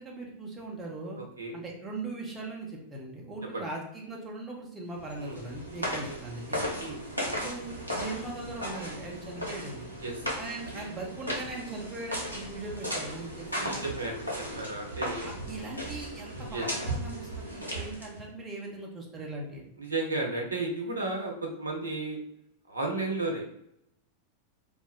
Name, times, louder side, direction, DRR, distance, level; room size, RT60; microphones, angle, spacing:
voice 1, 0.0-1.2 1.5-6.6 7.3-9.9 10.4-13.8 15.2-19.7, right 2 dB, 15° right, -3 dB, 0.8 m, -40 dB
voice 2, 1.2-1.6 3.5-3.6 5.2-5.4 6.0-6.2 6.8-7.0 10.0-10.1 13.6-14.2 14.6-15.3 16.5-16.7 19.8-22.2 22.7-23.7, right 2 dB, 75° right, 1 dB, 0.6 m, -33 dB
sound 1, 5.0-18.3, equal, 85° left, 0.7 m, -36 dB
2.4 x 2.1 x 3.6 m, 0.76 s
figure-of-eight pair, 90°, 0 cm